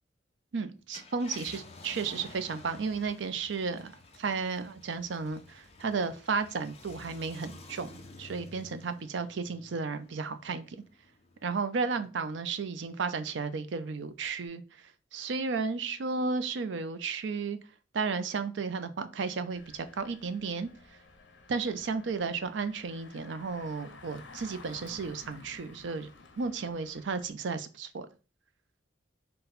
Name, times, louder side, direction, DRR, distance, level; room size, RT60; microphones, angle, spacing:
voice 1, 0.5-3.9 4.2-10.8 11.4-17.6 17.9-20.7 21.5-26.1 26.4-28.1, right 4 dB, 70° right, 11 dB, 0.5 m, -33 dB
Car, 0.8-11.6 12.1-12.2 14.2-14.5, left 3 dB, 35° left, 0.5 m, -51 dB
Engine, 19.5-27.3, left 3 dB, 75° left, 0.7 m, -53 dB
3.8 x 2.2 x 4.2 m, 0.34 s
head